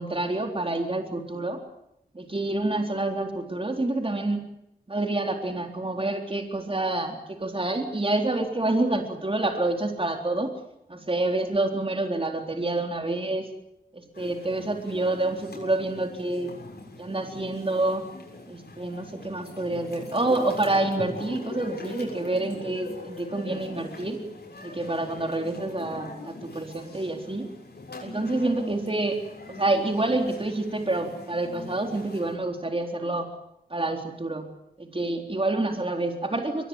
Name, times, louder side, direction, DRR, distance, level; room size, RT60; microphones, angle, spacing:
voice 1, 0.0-1.6 2.1-4.4 4.9-10.6 10.9-13.5 13.9-16.5 17.0-18.1 18.5-24.2 24.6-27.5 28.0-29.2 29.5-33.3 33.7-34.5 34.8-36.7, right 2 dB, 35° right, 3 dB, 3.9 m, -28 dB
sound 1, 14.1-32.4, left 2 dB, 75° left, 7.1 m, -42 dB
23.5 x 20.0 x 9.0 m, 0.79 s
cardioid pair, 45°, 17 cm